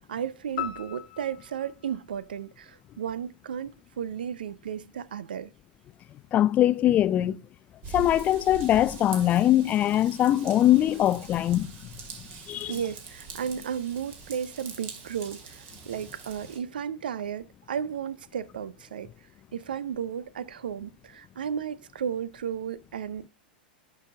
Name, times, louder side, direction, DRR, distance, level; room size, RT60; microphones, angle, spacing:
voice 1, 0.1-5.5 12.7-19.1 19.5-23.3, right 8 dB, 70° right, 0.5 m, -34 dB
sound 1, 0.6-3.0, left 13 dB, 60° left, 1.3 m, -39 dB
voice 2, 6.3-7.4 7.9-11.7 12.5-12.8, left 12 dB, 30° left, 0.4 m, -22 dB
Raindrop / Vehicle horn car horn honking / Trickle dribble, 7.8-16.6, right 5 dB, 40° right, 2.1 m, -43 dB
10.5 x 5.5 x 3.4 m
figure-of-eight pair, 95°, 5 cm